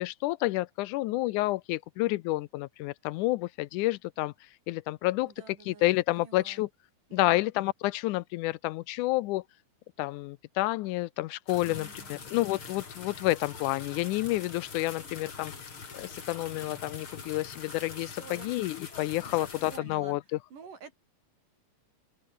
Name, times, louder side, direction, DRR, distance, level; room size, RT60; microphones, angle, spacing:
voice 1, 0.0-4.3 4.7-6.7 7.1-9.4 10.0-15.5 15.9-20.4, left 18 dB, 80° left, 2.0 m, -30 dB
voice 2, 5.3-6.7 7.1-7.4 11.6-12.3 18.0-18.5 19.2-20.2 20.5-21.0, right 6 dB, 80° right, 5.8 m, -49 dB
sound 1, 11.5-19.8, left 5 dB, 40° left, 3.8 m, -44 dB
open air
omnidirectional pair, 3.7 m